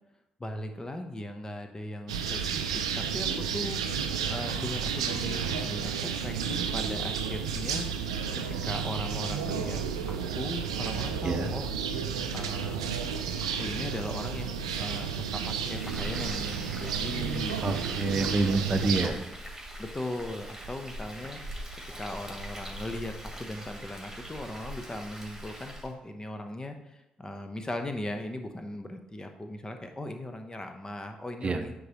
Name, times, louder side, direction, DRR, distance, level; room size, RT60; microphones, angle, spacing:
voice 1, 0.4-3.8 4.2-7.9 8.3-9.8 10.1-11.7 12.3-13.0 13.4-18.0 19.0-19.2 19.8-21.4 22.0-31.7, left 1 dB, 20° left, 6 dB, 0.9 m, -38 dB
sound 1, 2.1-19.1, right 7 dB, 85° right, 0.4 m, -32 dB
Frying (food), 15.6-25.9, equal, 10° right, 2.3 m, -42 dB
voice 2, 17.6-19.2 31.4-31.6, right 3 dB, 35° right, 8 dB, 0.7 m, -27 dB
9.3 x 3.9 x 3.0 m, 0.93 s
figure-of-eight pair, 40°, 3 cm